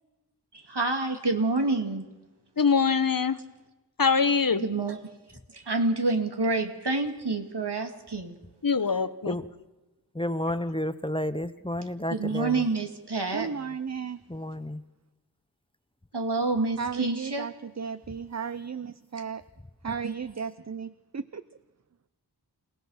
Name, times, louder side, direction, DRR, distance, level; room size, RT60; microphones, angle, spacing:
voice 1, 0.5-2.0 4.6-5.0 5.5-8.4 12.1-13.5 16.1-17.5 19.1-19.2 19.9-20.1, right 3 dB, 80° right, 4 dB, 2.4 m, -28 dB
voice 2, 2.6-3.4 4.0-4.7 8.6-9.4, left 5 dB, 55° left, 14 dB, 1.0 m, -23 dB
voice 3, 8.9-9.5 10.1-12.7 14.3-14.8, left 1 dB, 15° left, 13 dB, 0.8 m, -31 dB
voice 4, 13.3-14.2 16.8-19.4 19.8-21.4, right 6 dB, 40° right, 13 dB, 0.6 m, -35 dB
29.0 x 16.5 x 5.7 m, 1.1 s
wide cardioid pair, 55°, 40 cm